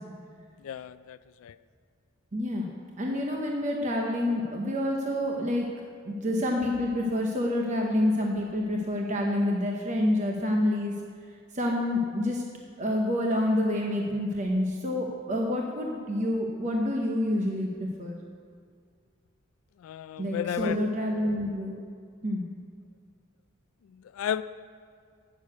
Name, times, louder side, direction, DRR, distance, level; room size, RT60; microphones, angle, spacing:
voice 1, 0.6-1.6 19.8-20.8 23.9-24.4, left 9 dB, 80° left, 15 dB, 0.3 m, -33 dB
voice 2, 2.3-2.7 3.0-5.7 6.1-11.0 11.5-12.4 12.8-18.1 20.2-21.8 22.2-22.4, left 1 dB, 35° right, 0 dB, 0.9 m, -28 dB
8.7 x 6.5 x 8.2 m, 2.1 s
head